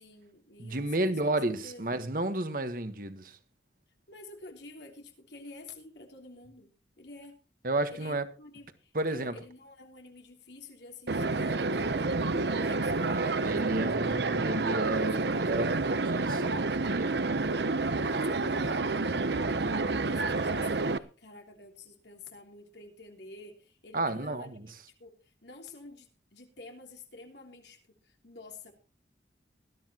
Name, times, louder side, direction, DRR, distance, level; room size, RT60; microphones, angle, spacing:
voice 1, 0.0-1.1 1.6-1.8 4.1-6.7 7.0-7.4 7.9-14.2 14.8-16.0 18.0-24.6 25.0-28.7, left 2 dB, 80° left, 3.2 m, -50 dB
voice 2, 0.6-3.4 7.6-8.2 8.9-9.3 13.1-17.1 23.9-24.7, right 2 dB, 50° right, 1.4 m, -32 dB
sound 1, 11.1-21.0, right 3 dB, 75° right, 0.8 m, -29 dB
20.0 x 13.0 x 3.0 m
head